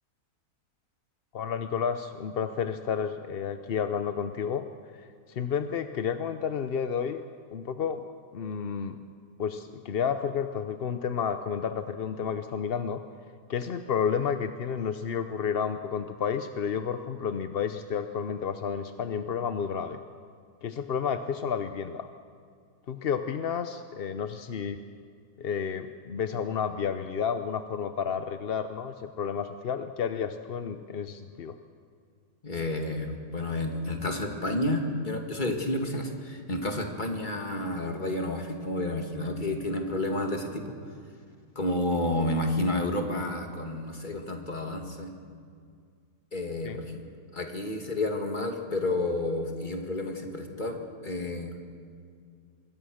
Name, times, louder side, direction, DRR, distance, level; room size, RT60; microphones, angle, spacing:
voice 1, 1.3-4.6 5.0-7.2 7.5-8.0 8.3-9.0 9.4-13.0 13.5-20.0 20.6-22.1 22.9-24.8 25.4-31.6 46.6-46.8, left 7 dB, 50° left, 9 dB, 0.7 m, -31 dB
voice 2, 32.4-40.7 41.6-45.1 46.3-47.0 47.3-51.5, left 1 dB, 30° left, 3 dB, 2.3 m, -30 dB
25.5 x 21.5 x 6.5 m, 2.1 s
omnidirectional pair, 1.7 m